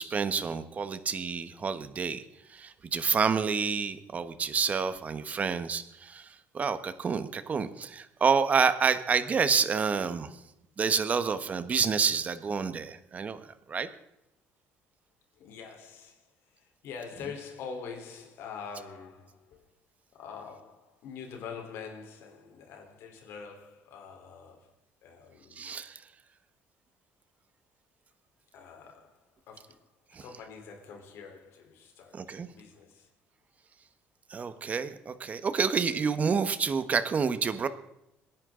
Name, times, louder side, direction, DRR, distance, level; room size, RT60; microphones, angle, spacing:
voice 1, 0.0-2.2 2.5-10.4 10.8-13.4 13.7-13.9 25.6-26.0 30.1-30.2 32.1-32.5 34.3-37.7, right 6 dB, 35° right, 1.2 m, -28 dB
voice 2, 15.3-19.6 20.1-24.7 25.0-25.6 28.5-29.9 30.2-33.1, left 6 dB, 70° left, 4.0 m, -45 dB
27.0 x 10.5 x 3.9 m
cardioid pair, 115°, 4 cm